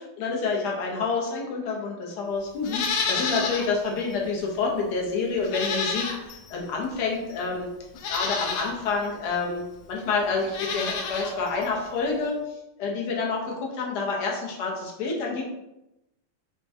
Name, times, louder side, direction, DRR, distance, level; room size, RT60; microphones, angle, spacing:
voice 1, 0.2-7.7 8.1-9.6 9.9-12.3 12.8-15.4, left 4 dB, 60° left, -1 dB, 1.1 m, -28 dB
Livestock farm animals working animals, 2.6-3.7 4.1-4.2 5.4-6.5 7.3-7.4 7.9-8.7 10.4-11.3 11.6-11.7, left 5 dB, 80° left, 1.4 m, -29 dB
5.4 x 2.2 x 2.7 m, 0.92 s
omnidirectional pair, 2.4 m